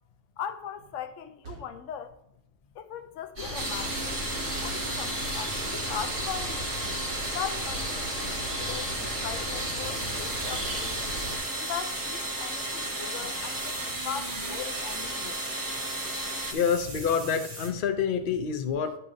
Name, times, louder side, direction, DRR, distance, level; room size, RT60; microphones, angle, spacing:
voice 1, 0.4-2.1 2.8-6.7 7.3-11.0 11.6-15.5, left 9 dB, 85° left, 0.9 m, -39 dB
sound 1, 0.8-1.0 1.4-1.9 3.6-5.0 5.3-5.6 7.2-9.4 9.8-17.7, right 2 dB, 85° right, 1.8 m, -44 dB
sound 2, 3.4-11.4, equal, 50° right, 3.4 m, -35 dB
sound 3, 3.5-16.5, right 1 dB, 20° right, 0.7 m, -34 dB
voice 2, 16.5-19.0, left 7 dB, 50° left, 0.8 m, -27 dB
10.0 x 5.6 x 2.6 m
omnidirectional pair, 1.3 m